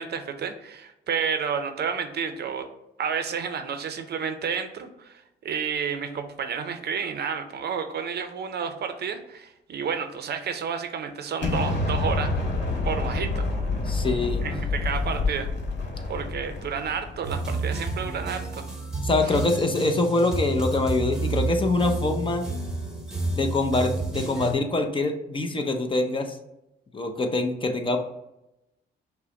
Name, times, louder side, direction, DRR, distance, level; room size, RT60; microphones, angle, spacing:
voice 1, 0.0-2.7 3.0-12.3 12.8-13.5 14.4-15.5 16.1-18.7 19.2-19.4, right 6 dB, 55° right, 8 dB, 0.6 m, -31 dB
Explosion, 11.4-17.4, left 3 dB, 60° left, 1.6 m, -28 dB
voice 2, 13.9-14.4 19.0-22.5 23.3-26.4 26.9-28.0, left 2 dB, 25° left, 5 dB, 0.6 m, -24 dB
sound 1, 17.2-24.5, right 2 dB, 5° right, 1.0 m, -30 dB
5.7 x 2.1 x 3.8 m, 0.88 s
cardioid pair, 90°, 20 cm